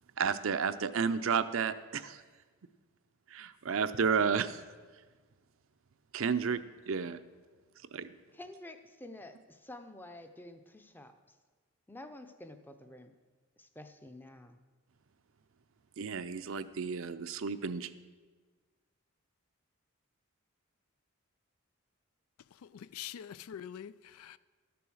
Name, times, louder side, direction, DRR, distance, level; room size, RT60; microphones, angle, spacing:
voice 1, 0.2-2.2 3.3-4.6 6.1-7.2 7.9-8.1 16.0-17.9, right 6 dB, 65° right, 0.5 m, -32 dB
voice 2, 8.3-11.3 11.9-13.1 13.6-14.6, left 1 dB, 10° left, 0.6 m, -49 dB
voice 3, 22.6-24.4, left 9 dB, 90° left, 0.4 m, -45 dB
12.5 x 6.9 x 6.3 m
head